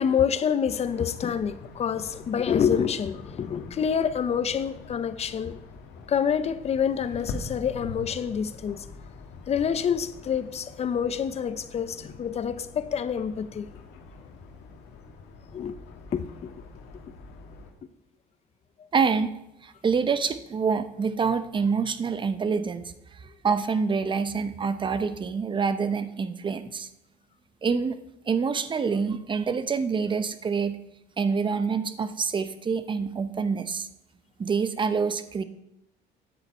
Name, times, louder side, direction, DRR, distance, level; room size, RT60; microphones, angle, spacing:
voice 1, 0.0-5.6 6.1-8.8 9.5-13.7 15.5-15.8 16.1-16.5, left 7 dB, 40° left, 0.7 m, -27 dB
sound 1, 0.7-17.7, left 4 dB, 80° left, 1.5 m, -44 dB
voice 2, 18.9-19.3 19.6-22.9 23.4-26.9 27.6-28.0 28.3-30.8 31.2-33.9 34.4-35.4, right 5 dB, 30° right, 0.7 m, -26 dB
10.0 x 7.8 x 4.4 m
cardioid pair, 110°, 17 cm